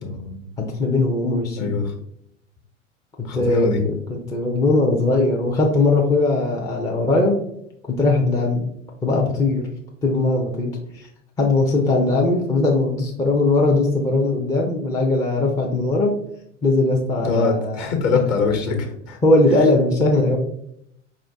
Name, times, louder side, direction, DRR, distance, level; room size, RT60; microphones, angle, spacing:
voice 1, 0.0-0.4 1.6-1.9 3.2-3.8 17.2-19.2, left 4 dB, 40° left, 3 dB, 1.2 m, -23 dB
voice 2, 0.6-1.8 3.3-3.7 4.1-7.3 7.9-8.7 9.0-9.7 10.0-11.1 11.4-16.1 16.6-17.9 19.2-20.4, left 2 dB, 10° left, -2 dB, 0.4 m, -19 dB
4.9 x 2.5 x 3.4 m, 0.73 s
hypercardioid pair, 95°, 38 cm